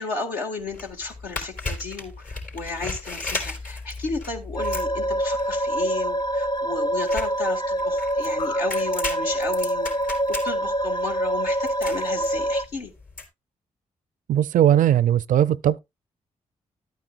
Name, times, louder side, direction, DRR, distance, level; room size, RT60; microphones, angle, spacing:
voice 1, 0.0-9.9 10.4-12.9, left 3 dB, 85° left, 1.7 m, -33 dB
sound 1, 0.6-13.2, left 3 dB, 65° left, 3.8 m, -36 dB
sound 2, 4.6-12.6, right 1 dB, 30° left, 0.6 m, -25 dB
voice 2, 14.3-15.8, right 11 dB, 65° right, 0.4 m, -19 dB
12.0 x 9.1 x 2.4 m
hypercardioid pair, 45°, 15 cm